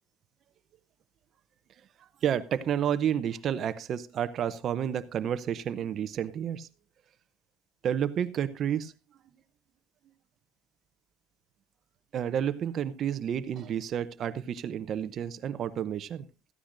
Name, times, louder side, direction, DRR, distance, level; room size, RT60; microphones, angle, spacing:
voice 1, 2.2-6.7 7.8-8.9 12.1-16.3, right 9 dB, 35° right, 0.6 m, -30 dB
16.5 x 14.5 x 2.6 m
cardioid pair, 160°, 0 cm